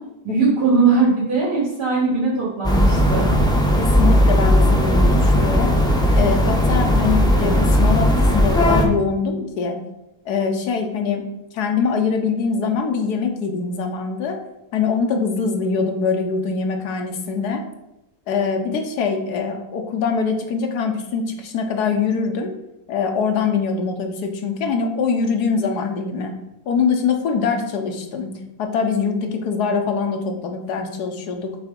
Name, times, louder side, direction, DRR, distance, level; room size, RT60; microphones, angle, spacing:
voice 1, 0.2-3.3, right 4 dB, 80° right, -8 dB, 3.3 m, -19 dB
Suburban Residential Medium To Heavy Skyline, 2.6-8.9, equal, 5° left, 0.6 m, -16 dB
voice 2, 3.8-5.7 6.1-9.8 10.2-11.3 11.5-14.4 14.7-17.6 18.3-22.5 22.9-26.3 26.7-28.3 28.6-31.6, left 5 dB, 80° left, 4 dB, 1.4 m, -23 dB
6.9 x 3.5 x 5.2 m, 0.91 s
omnidirectional pair, 1.7 m